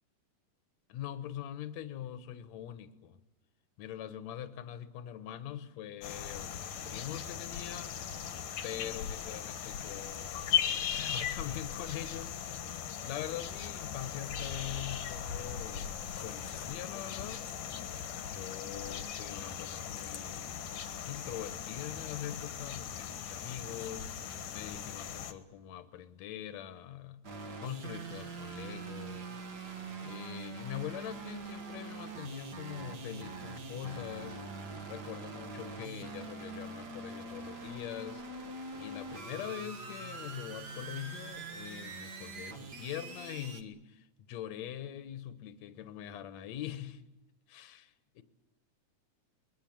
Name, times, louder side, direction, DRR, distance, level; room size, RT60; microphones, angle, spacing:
voice 1, 0.9-3.2 3.8-8.3 8.6-17.5 18.2-20.6 21.1-27.2 27.6-29.3 30.0-34.4 34.9-38.2 38.8-47.0 47.5-48.2, left 11 dB, 65° left, 2.3 m, -43 dB
sound 1, 6.0-25.3, left 8 dB, 85° left, 3.1 m, -38 dB
sound 2, 27.2-43.6, right 3 dB, 40° right, 1.6 m, -43 dB
23.0 x 22.0 x 8.9 m
omnidirectional pair, 3.7 m